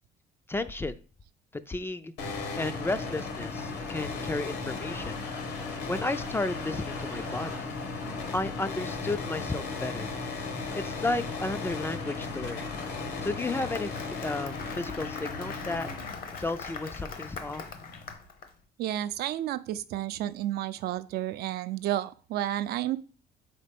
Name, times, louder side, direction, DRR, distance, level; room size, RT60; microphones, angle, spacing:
voice 1, 0.5-1.0 1.7-2.1 2.6-5.2 5.9-7.8 8.3-10.1 10.7-12.7 13.2-13.9 14.2-15.9 16.4-17.6, left 2 dB, 15° left, 12 dB, 0.3 m, -33 dB
sound 1, 2.2-18.1, left 4 dB, 75° left, 1.5 m, -36 dB
Applause, 13.3-18.5, left 5 dB, 60° left, 1.0 m, -42 dB
voice 2, 18.8-23.0, right 13 dB, 70° right, 12 dB, 0.5 m, -31 dB
4.6 x 4.3 x 5.1 m, 0.39 s
cardioid pair, 110°, 17 cm